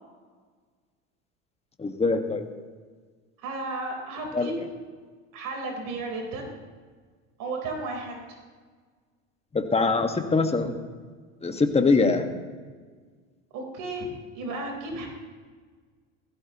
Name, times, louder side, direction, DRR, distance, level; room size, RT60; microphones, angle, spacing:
voice 1, 1.8-2.5 4.3-4.5 9.5-10.7 11.4-12.3, left 4 dB, 15° left, 5 dB, 1.5 m, -23 dB
voice 2, 3.4-4.6 5.3-6.5 7.4-8.4 13.5-14.1 14.3-15.1, right 2 dB, 55° right, 1 dB, 3.8 m, -33 dB
16.5 x 15.5 x 3.0 m, 1.5 s
hypercardioid pair, 85°, 38 cm